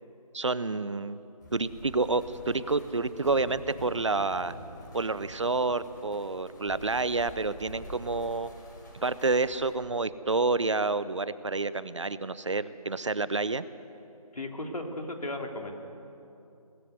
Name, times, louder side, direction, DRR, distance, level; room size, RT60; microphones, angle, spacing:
voice 1, 0.3-1.2 1.5-4.6 4.9-8.5 8.9-13.6, right 3 dB, 50° right, 15 dB, 0.7 m, -29 dB
sound 1, 1.4-9.7, equal, 30° left, 5.2 m, -47 dB
voice 2, 14.3-15.7, left 1 dB, 75° left, 3 dB, 3.1 m, -35 dB
19.5 x 13.5 x 9.6 m, 2.8 s
figure-of-eight pair, 175°, 19 cm